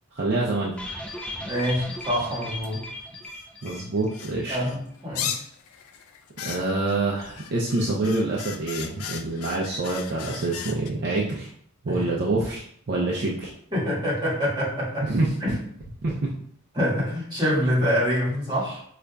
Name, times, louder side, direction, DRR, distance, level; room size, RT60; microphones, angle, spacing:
voice 1, 0.1-0.7 3.6-4.6 6.4-11.5 11.8-13.5 15.0-15.3 16.0-16.3, right 2 dB, 50° right, -3 dB, 0.5 m, -26 dB
sound 1, 0.8-4.2 4.5-4.6 4.9-5.0, left 1 dB, 5° left, 0.4 m, -36 dB
voice 2, 1.4-2.8 4.5-5.4 11.9-12.0 13.7-15.1 15.4-15.6 16.7-18.8, equal, 20° right, -6 dB, 1.5 m, -26 dB
sound 2, 2.6-2.7 3.2-4.3 4.6-10.9, left 8 dB, 80° left, 0.4 m, -36 dB
5.1 x 2.4 x 2.2 m, 0.63 s
head